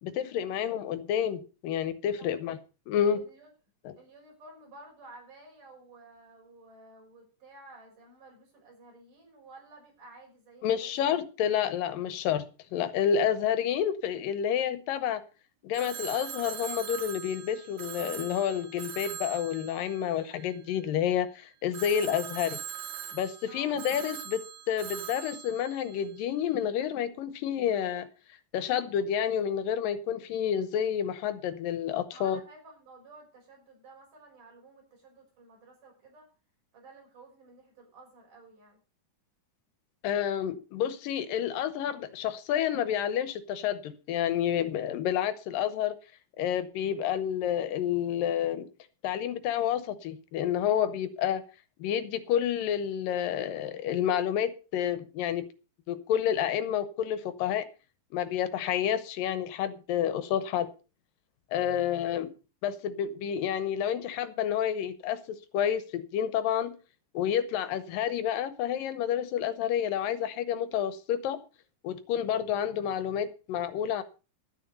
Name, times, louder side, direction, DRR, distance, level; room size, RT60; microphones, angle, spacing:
voice 1, 0.0-2.6 2.9-3.2 10.6-12.4 12.7-15.2 15.6-22.6 23.1-24.4 24.7-28.1 28.5-32.4 40.0-45.9 46.4-48.7 49.0-51.4 51.8-55.4 55.9-57.6 58.1-60.7 61.5-62.3 62.6-65.2 65.5-66.7 67.1-71.4 71.8-74.0, left 9 dB, 85° left, 2.7 m, -29 dB
voice 2, 3.0-3.5 4.0-11.0 23.5-23.8 32.1-36.3 36.7-38.8 61.7-62.0, right 2 dB, 65° right, 7.2 m, -53 dB
Telephone, 15.7-21.0 21.7-26.6, right 10 dB, 90° right, 2.9 m, -42 dB
12.0 x 10.0 x 5.4 m
omnidirectional pair, 3.9 m